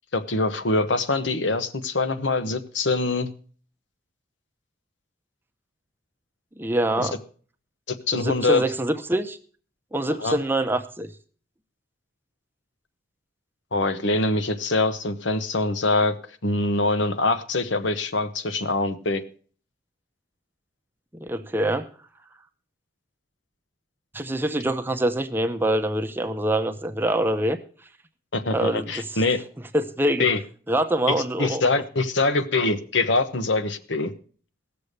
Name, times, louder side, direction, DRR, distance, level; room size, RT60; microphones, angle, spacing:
voice 1, 0.1-3.3 7.0-7.1 7.9-8.6 10.2-10.4 13.7-16.2 16.4-19.2 28.3-29.4 30.2-30.4 31.4-34.1, left 2 dB, 85° left, 11 dB, 1.0 m, -24 dB
voice 2, 6.6-7.2 8.1-9.4 9.9-11.1 21.1-21.9 24.1-27.6 28.5-29.2 29.7-30.3 30.7-31.6, right 1 dB, 10° right, 6 dB, 0.7 m, -25 dB
16.5 x 6.9 x 6.6 m, 0.43 s
head